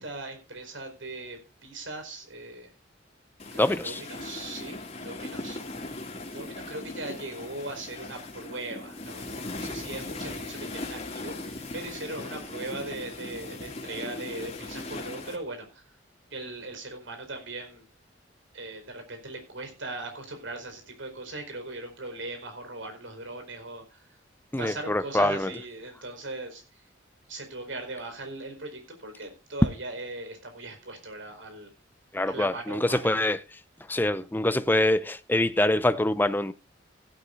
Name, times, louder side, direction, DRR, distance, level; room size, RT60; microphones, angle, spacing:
voice 1, 0.0-2.7 3.5-5.6 6.3-15.8 16.3-17.8 18.5-24.1 24.6-26.6 27.3-31.7 32.3-33.1, right 2 dB, 75° right, 4.6 m, -39 dB
sound 1, 3.4-15.4, left 2 dB, 35° left, 2.5 m, -39 dB
voice 2, 3.5-4.0 24.5-25.5 32.1-33.4 33.9-36.5, left 1 dB, 10° left, 0.7 m, -25 dB
16.0 x 11.5 x 2.6 m
head